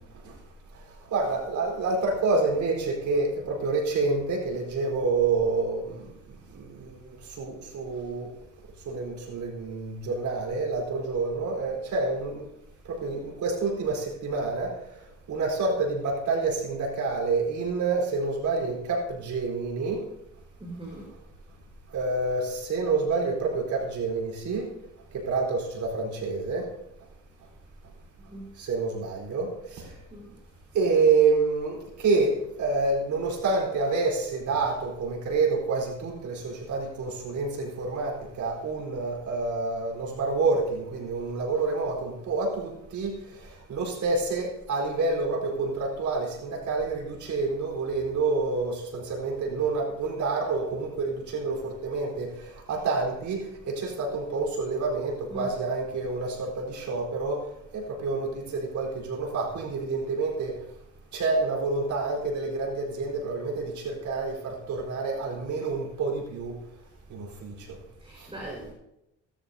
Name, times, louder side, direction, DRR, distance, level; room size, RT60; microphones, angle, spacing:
voice 1, 1.1-6.0 6.5-8.3 8.9-12.5 12.9-14.7 15.3-20.0 21.9-24.7 25.3-26.7 28.6-29.9 30.7-43.1 43.7-57.4 57.7-60.6 61.1-66.5 67.1-67.8, right 3 dB, 70° right, -1 dB, 4.3 m, -28 dB
voice 2, 20.6-21.1 28.3-28.4 30.1-30.3 55.3-55.4 68.0-68.7, right 1 dB, 20° right, -3 dB, 4.9 m, -40 dB
18.0 x 13.0 x 2.8 m, 0.85 s
cardioid pair, 90°, 30 cm